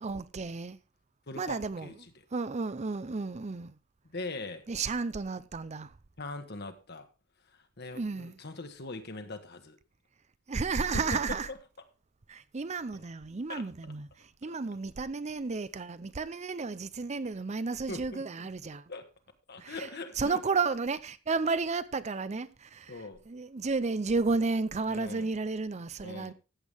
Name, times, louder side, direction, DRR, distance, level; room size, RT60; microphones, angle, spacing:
voice 1, 0.0-0.8 1.4-1.9 2.3-3.7 4.7-5.9 7.9-8.4 10.5-11.5 12.3-18.8 19.6-19.9 20.2-23.0 23.3-26.3, right 4 dB, 35° right, 0.5 m, -32 dB
voice 2, 1.3-2.1 4.0-4.6 6.2-7.1 7.8-9.8 10.9-11.6 13.5-13.9 17.9-18.2 18.9-19.1 19.5-20.4 22.9-23.2 24.9-25.3 26.0-26.3, left 2 dB, 55° left, 1.6 m, -41 dB
14.5 x 8.2 x 3.5 m
head